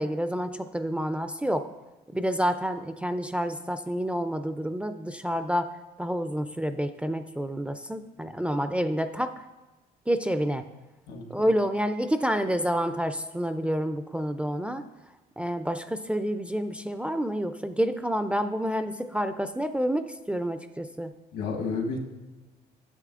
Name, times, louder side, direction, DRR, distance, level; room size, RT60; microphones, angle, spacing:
voice 1, 0.0-1.7 2.1-5.7 6.0-9.3 10.1-10.6 11.3-14.8 15.4-21.1, equal, 5° right, 9 dB, 0.3 m, -28 dB
voice 2, 11.1-11.5 21.3-22.0, left 4 dB, 80° left, 2 dB, 1.2 m, -31 dB
9.9 x 7.4 x 2.4 m, 1.1 s
cardioid pair, 110°, 17 cm